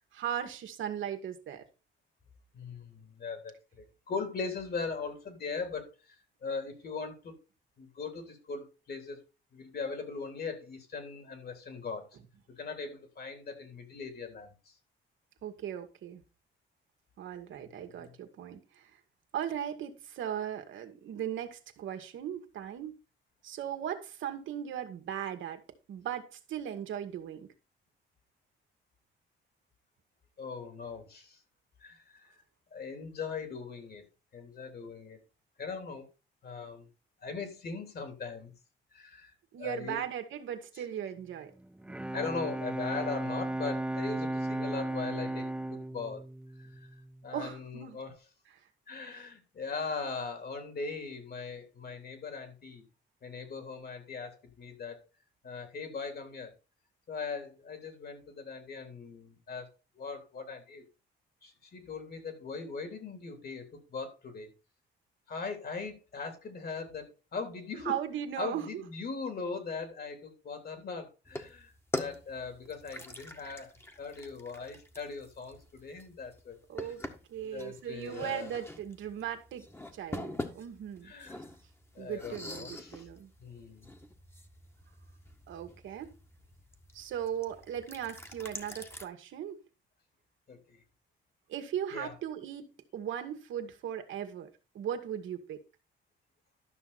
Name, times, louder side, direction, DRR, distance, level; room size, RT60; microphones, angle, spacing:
voice 1, 0.1-1.6 15.4-16.2 17.2-18.9 19.3-23.0 23.4-25.6 25.9-27.5 39.5-41.5 47.3-48.0 49.1-49.2 67.9-68.8 76.7-77.0 77.3-79.7 79.9-81.1 82.0-83.3 85.5-86.1 86.9-89.6 91.5-92.7 92.9-95.6, right 9 dB, 75° right, 1.9 m, -38 dB
voice 2, 2.5-7.3 7.8-9.2 9.5-12.1 12.6-14.7 18.0-18.1 30.4-31.4 31.8-32.4 32.7-34.0 34.3-35.2 35.6-36.1 36.4-36.9 37.2-38.5 38.9-40.0 40.7-40.8 42.1-46.2 46.6-46.9 47.2-48.1 48.9-52.8 53.2-55.0 55.4-56.5 57.1-59.7 59.9-60.8 61.4-64.5 65.3-67.9 68.4-73.7 74.0-76.9 77.4-78.5 81.0-81.4 81.9-83.1 83.4-83.9 90.5-90.8 91.9-92.1, left 4 dB, 50° left, 3.4 m, -40 dB
Bowed string instrument, 41.6-47.4, right 1 dB, 5° right, 0.4 m, -35 dB
sound 1, 71.2-89.1, left 1 dB, 10° left, 1.6 m, -45 dB
12.5 x 6.0 x 4.2 m
cardioid pair, 90°, 20 cm